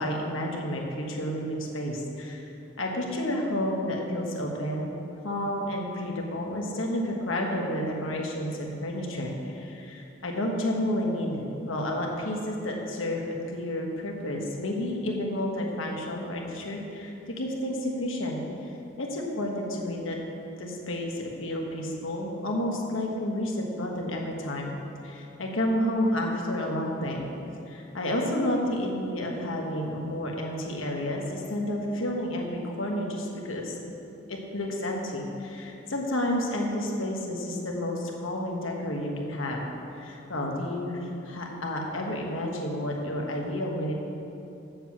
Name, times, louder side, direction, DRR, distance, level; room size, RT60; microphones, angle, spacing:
voice 1, 0.0-2.5 2.8-4.9 5.2-18.4 19.0-20.2 20.6-24.7 25.0-27.3 27.7-33.8 34.3-39.6 40.0-43.9, left 1 dB, 85° left, 0 dB, 1.4 m, -30 dB
7.4 x 7.2 x 7.2 m, 2.9 s
head